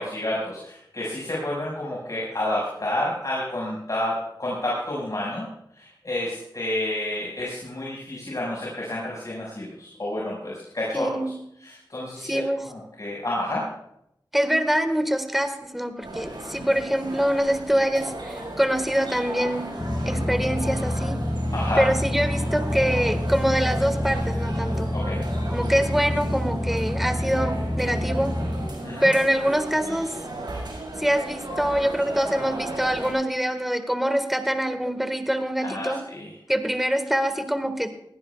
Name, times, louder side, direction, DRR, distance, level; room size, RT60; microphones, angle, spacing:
voice 1, 0.0-4.1 4.4-5.5 5.8-11.1 11.6-12.4 12.7-13.6 21.5-21.8 24.9-25.2 28.8-29.1 35.6-36.3, left 1 dB, 45° left, -5 dB, 5.6 m, -30 dB
voice 2, 10.9-11.4 12.2-12.7 14.3-19.7 20.0-21.2 21.8-24.9 25.5-28.4 29.0-30.2 31.0-36.0 36.5-37.9, equal, ahead, 8 dB, 1.7 m, -24 dB
sound 1, 16.0-33.1, right 2 dB, 65° right, 5.5 m, -36 dB
sound 2, 19.8-28.7, left 1 dB, 25° left, 1.1 m, -27 dB
20.0 x 17.0 x 2.4 m, 0.77 s
cardioid pair, 50°, 8 cm